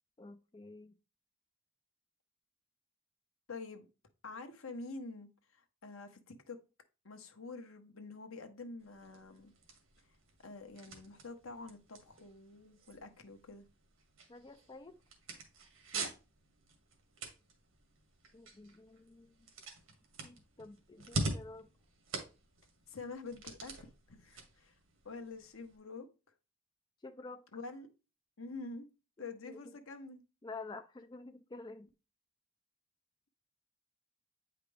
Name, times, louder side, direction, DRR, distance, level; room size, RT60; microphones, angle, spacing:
voice 1, 0.2-0.9 14.3-15.0 18.3-19.5 20.2-21.7 27.0-27.5 29.5-29.8 30.4-31.9, left 3 dB, 20° left, 0.4 m, -49 dB
voice 2, 3.5-3.9 4.2-6.6 7.0-9.5 10.4-13.7 15.9-16.1 22.9-24.7 25.0-26.1 27.5-27.9 28.4-28.9 29.2-30.2, left 3 dB, 80° left, 1.1 m, -47 dB
sound 1, 8.8-25.8, right 2 dB, 75° right, 1.9 m, -46 dB
8.9 x 5.0 x 3.3 m
head